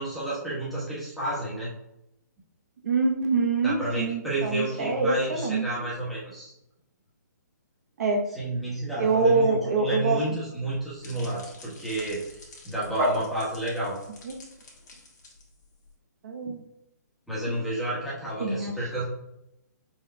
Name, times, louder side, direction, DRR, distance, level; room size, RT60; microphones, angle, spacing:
voice 1, 0.0-1.7 3.6-6.5 8.3-14.0 17.3-19.0, right 1 dB, ahead, -9 dB, 1.2 m, -31 dB
voice 2, 2.8-5.7 8.0-8.2 9.0-10.2 13.0-13.1 14.2-14.3 16.2-16.6 18.4-18.7, right 3 dB, 55° right, 1 dB, 0.9 m, -25 dB
sound 1, 10.5-15.9, left 3 dB, 70° left, 1.5 m, -50 dB
4.9 x 4.5 x 2.2 m, 0.85 s
hypercardioid pair, 160°, 10 cm